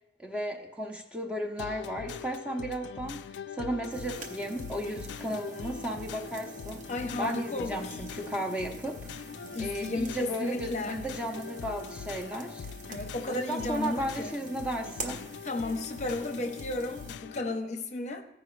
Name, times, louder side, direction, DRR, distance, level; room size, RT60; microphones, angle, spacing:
voice 1, 0.2-6.8 7.2-9.1 9.6-12.6 13.3-15.2, right 1 dB, 5° right, 1 dB, 0.6 m, -35 dB
sound 1, 1.6-17.6, left 6 dB, 85° left, 0.3 m, -42 dB
sound 2, 3.9-17.1, right 3 dB, 45° right, 0.7 m, -47 dB
voice 2, 6.9-8.0 9.5-11.0 12.9-14.3 15.4-18.2, left 2 dB, 40° left, 6 dB, 0.7 m, -33 dB
14.5 x 4.9 x 3.1 m, 0.86 s
head